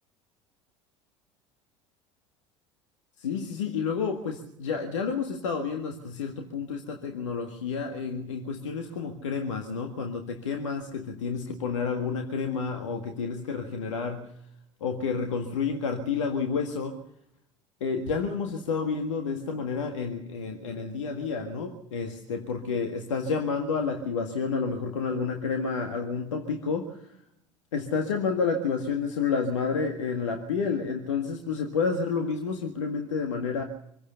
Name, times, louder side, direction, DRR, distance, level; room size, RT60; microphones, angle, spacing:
voice 1, 3.2-14.3 14.8-17.0 17.8-27.2 27.7-33.6, left 5 dB, 75° left, 4 dB, 1.8 m, -30 dB
26.0 x 16.0 x 6.9 m, 0.75 s
figure-of-eight pair, 65°, 16 cm